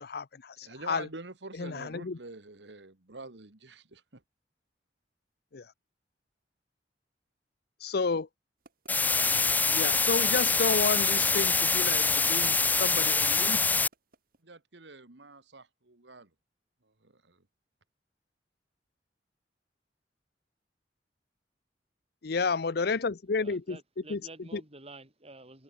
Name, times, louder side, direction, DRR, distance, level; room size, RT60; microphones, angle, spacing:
voice 1, 0.0-1.1 1.6-2.2 5.5-5.6 7.8-8.3 9.7-13.6 22.2-23.8 24.1-24.2 24.5-24.6, left 4 dB, 60° left, 0.7 m, -31 dB
voice 2, 0.6-4.2 14.4-16.3 17.0-17.4, right 3 dB, 80° right, 1.9 m, -46 dB
sound 1, 8.6-14.4, right 3 dB, 55° right, 3.1 m, -52 dB
sound 2, 8.9-13.9, left 4 dB, 10° left, 0.3 m, -25 dB
voice 3, 23.4-25.6, right 2 dB, 35° right, 5.3 m, -49 dB
head